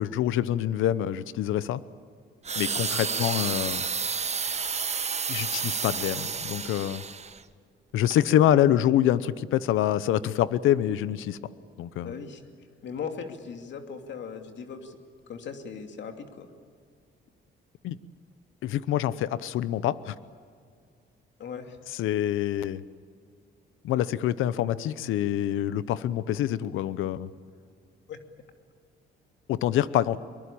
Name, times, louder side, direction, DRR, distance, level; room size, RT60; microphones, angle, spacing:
voice 1, 0.0-1.8 2.6-3.9 5.3-7.0 7.9-11.4 11.8-12.1 17.8-18.0 18.6-20.1 22.0-22.8 23.8-27.3 29.5-30.2, left 12 dB, 85° left, 16 dB, 0.8 m, -26 dB
sound 1, 2.4-7.4 8.0-8.2, right 5 dB, 35° right, 1.1 m, -30 dB
voice 2, 12.0-12.4 12.8-15.0 15.3-16.5 21.4-21.8 28.1-28.2, left 6 dB, 65° left, 5 dB, 2.7 m, -38 dB
23.5 x 22.0 x 8.7 m, 2.1 s
cardioid pair, 90°, 20 cm